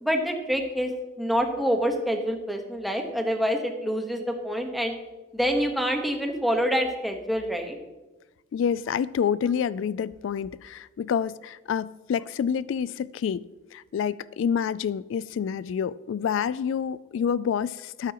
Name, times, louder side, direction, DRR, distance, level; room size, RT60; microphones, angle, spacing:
voice 1, 0.0-0.9 1.2-5.0 5.3-7.8, equal, ahead, 3 dB, 1.2 m, -26 dB
voice 2, 8.5-18.1, left 7 dB, 80° left, 20 dB, 0.3 m, -28 dB
13.0 x 12.0 x 3.0 m, 1.1 s
head